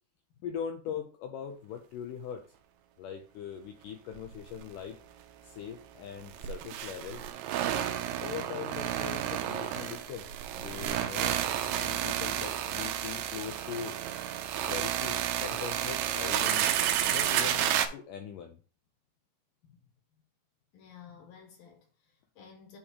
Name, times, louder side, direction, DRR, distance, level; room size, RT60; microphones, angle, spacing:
voice 1, 0.4-2.5 3.0-5.0 5.4-7.2 8.2-10.3 10.6-14.0 14.7-16.7 17.1-18.6, left 8 dB, 90° left, 1.9 m, -41 dB
sound 1, 4.2-4.3 4.6-4.7 6.2-17.9, right 10 dB, 90° right, 2.6 m, -31 dB
voice 2, 20.7-22.8, left 7 dB, 70° left, 2.6 m, -53 dB
8.2 x 3.6 x 4.8 m
omnidirectional pair, 4.5 m